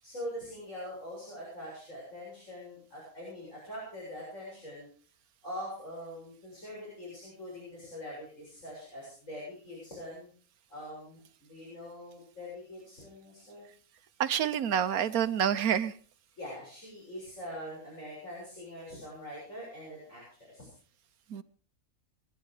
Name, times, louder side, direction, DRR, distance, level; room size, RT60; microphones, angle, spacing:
voice 1, 0.0-4.9 5.4-10.3 10.7-13.7 16.4-20.7, equal, 60° left, -5 dB, 7.6 m, -43 dB
voice 2, 14.2-15.9 21.3-21.4, right 9 dB, 85° right, 13 dB, 1.4 m, -28 dB
22.5 x 11.0 x 4.9 m, 0.43 s
omnidirectional pair, 1.5 m